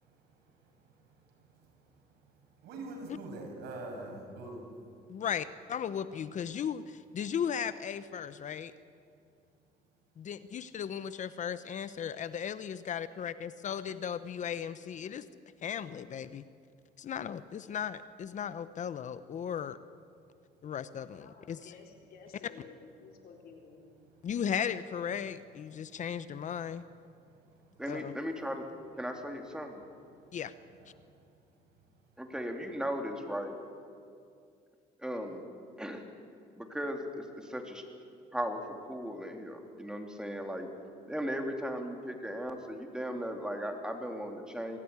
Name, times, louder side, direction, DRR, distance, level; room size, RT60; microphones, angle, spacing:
voice 1, 0.3-4.7 25.8-26.0 27.1-27.8 30.2-30.3 30.7-31.2, right 2 dB, 75° right, 2 dB, 6.5 m, -47 dB
voice 2, 5.1-8.7 10.2-15.3 15.6-16.4 17.0-19.8 20.6-21.7 24.2-26.8 27.9-28.1 30.3-30.5, left 8 dB, 45° left, 14 dB, 0.8 m, -36 dB
voice 3, 21.2-23.8, left 5 dB, 65° left, 2 dB, 4.5 m, -53 dB
voice 4, 27.8-28.6 29.0-29.8 32.2-33.6 35.0-35.5 35.8-36.0 36.6-37.8 38.3-40.7 41.1-44.8, equal, 5° right, 3 dB, 3.2 m, -37 dB
23.5 x 16.0 x 9.7 m, 2.4 s
cardioid pair, 110°, 17 cm